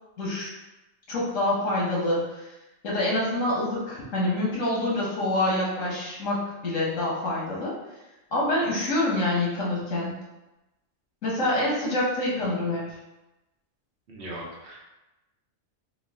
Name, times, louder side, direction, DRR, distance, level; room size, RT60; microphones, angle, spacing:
voice 1, 0.2-0.5 1.1-2.5 2.8-7.7 8.3-10.2 11.2-12.8, left 1 dB, 85° left, -5 dB, 1.6 m, -26 dB
voice 2, 14.1-14.8, right 1 dB, 60° right, -4 dB, 1.0 m, -39 dB
3.9 x 2.3 x 3.6 m, 1.0 s
omnidirectional pair, 1.3 m